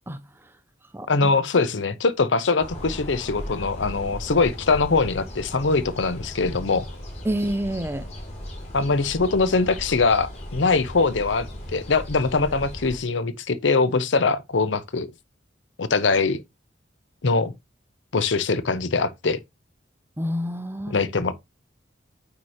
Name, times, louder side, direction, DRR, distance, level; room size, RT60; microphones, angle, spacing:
voice 1, 0.1-0.5 0.9-1.3 7.2-8.1 20.2-21.0, equal, 10° right, 0.6 m, -28 dB
voice 2, 1.1-6.8 8.7-15.1 15.8-16.4 17.2-17.5 18.1-19.4 20.9-21.3, left 4 dB, 80° left, 0.7 m, -22 dB
sound 1, 2.6-13.0, equal, 35° left, 2.5 m, -37 dB
8.3 x 2.9 x 4.9 m
head